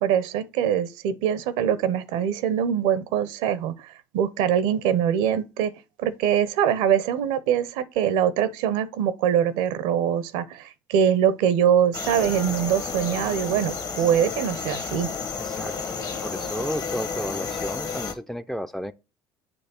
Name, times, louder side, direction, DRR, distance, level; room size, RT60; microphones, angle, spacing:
voice 1, 0.0-5.7 6.0-15.1, right 9 dB, 70° right, 0.7 m, -23 dB
sound 1, 11.9-18.1, left 5 dB, 40° left, 1.3 m, -31 dB
voice 2, 15.4-15.9 16.2-18.9, equal, 5° left, 0.5 m, -32 dB
8.0 x 3.1 x 4.3 m
hypercardioid pair, 65°, 10 cm